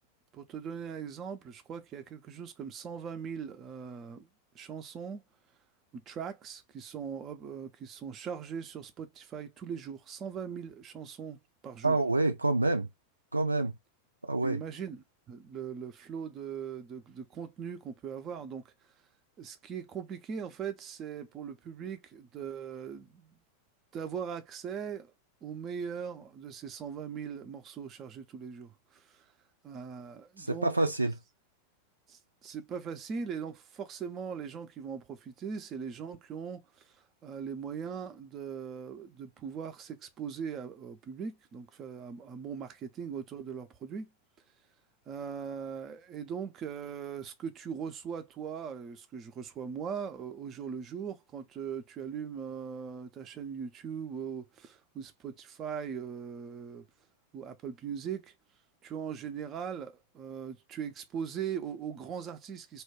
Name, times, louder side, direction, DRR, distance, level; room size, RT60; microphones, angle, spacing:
voice 1, 0.3-4.3 4.5-5.2 5.9-11.4 11.6-12.0 14.4-18.7 19.4-23.4 23.9-25.1 25.4-29.3 29.6-30.7 32.1-36.9 37.2-44.1 45.1-56.8 57.3-58.3 58.8-62.8, right 7 dB, 30° right, 0.5 m, -40 dB
voice 2, 11.8-12.9 13.3-13.7 14.2-14.6 30.4-31.1, right 2 dB, 80° right, 0.4 m, -27 dB
2.5 x 2.2 x 3.4 m
figure-of-eight pair, 90°, 0 cm